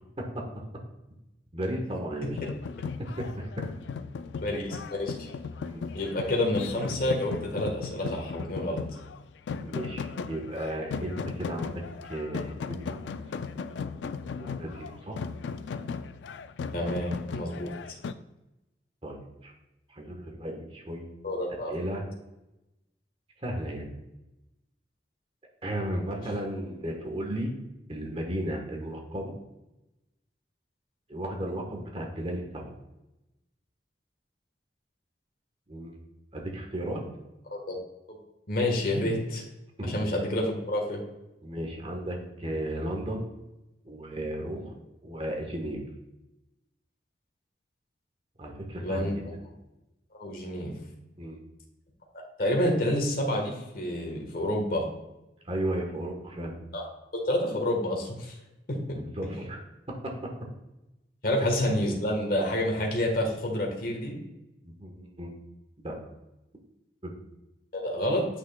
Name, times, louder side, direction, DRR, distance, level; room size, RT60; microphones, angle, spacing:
voice 1, 1.5-2.4 3.2-3.5 5.6-5.9 9.5-11.8 12.1-13.1 14.4-15.2 17.6-17.8 19.0-19.5 19.9-21.1 21.7-22.0 23.4-23.9 25.6-27.5 27.9-29.4 31.1-32.7 35.7-36.0 36.3-37.0 39.8-40.0 41.4-43.3 43.8-44.7 45.0-45.8 48.4-49.2 51.2-51.4 55.4-56.6 58.9-59.6 60.0-60.1 64.6-65.3 65.8-66.0 67.0-67.1, right 1 dB, 35° right, 1 dB, 1.2 m, -34 dB
sound 1, 2.4-18.1, left 5 dB, 80° left, 0.3 m, -37 dB
voice 2, 4.4-5.3 5.9-8.8 16.7-17.7 21.2-21.7 37.5-37.8 38.1-38.2 38.5-39.4 39.8-41.0 48.8-49.4 50.1-50.7 52.4-54.8 56.7-56.8 57.1-58.3 58.7-59.0 61.2-64.2 67.7-68.3, left 1 dB, 55° left, 0 dB, 1.4 m, -28 dB
8.3 x 6.1 x 2.3 m, 0.95 s
head